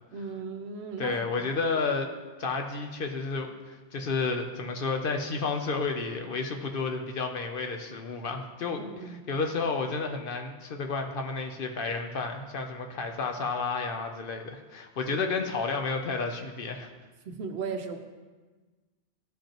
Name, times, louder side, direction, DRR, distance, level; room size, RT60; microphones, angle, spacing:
voice 1, 0.1-1.5 8.8-9.2 15.0-15.2 17.2-18.0, right 5 dB, 70° right, 6 dB, 0.9 m, -37 dB
voice 2, 1.0-2.1 2.4-16.9, left 4 dB, 55° left, 4 dB, 0.8 m, -31 dB
13.5 x 5.2 x 2.9 m, 1.3 s
omnidirectional pair, 1.2 m